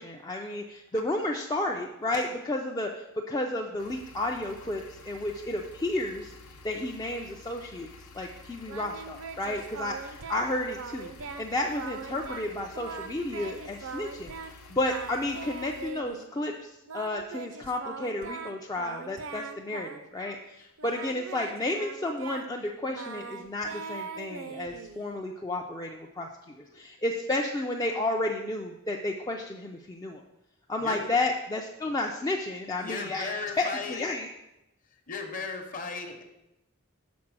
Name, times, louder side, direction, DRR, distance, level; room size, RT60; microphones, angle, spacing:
voice 1, 0.0-6.3 6.6-7.9 8.1-26.3 26.7-30.2 30.7-33.3 33.6-34.3, left 2 dB, 15° left, 0 dB, 0.4 m, -32 dB
sound 1, 3.8-15.9, left 3 dB, 85° left, 0.9 m, -50 dB
Singing, 8.7-10.5 10.8-11.5 11.7-12.5 12.7-14.5 14.8-16.3 16.9-20.5 20.8-25.2, right 5 dB, 70° right, 0.5 m, -41 dB
voice 2, 30.8-31.1 32.8-34.0 34.8-36.2, left 4 dB, 40° left, 5 dB, 0.9 m, -37 dB
6.1 x 4.7 x 6.0 m, 0.91 s
head